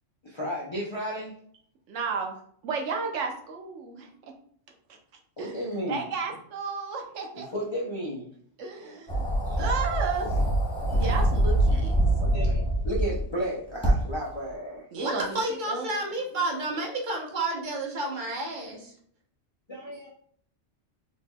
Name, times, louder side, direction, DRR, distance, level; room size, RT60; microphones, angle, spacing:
voice 1, 0.2-1.4 5.4-6.1 7.3-8.3 9.4-9.7 11.7-11.8 12.2-14.8 16.0-16.1 19.7-20.1, equal, 35° left, -5 dB, 0.4 m, -33 dB
voice 2, 1.9-2.3 2.6-4.1 5.4-5.6 5.9-7.5 8.6-10.4 10.9-12.0 14.9-15.9, right 4 dB, 75° right, 3 dB, 1.0 m, -33 dB
sound 1, 9.1-13.2 13.8-13.9, right 1 dB, 5° left, 0.8 m, -24 dB
voice 3, 15.0-18.9, right 2 dB, 45° right, -1 dB, 0.9 m, -30 dB
4.2 x 3.0 x 2.2 m, 0.62 s
omnidirectional pair, 1.3 m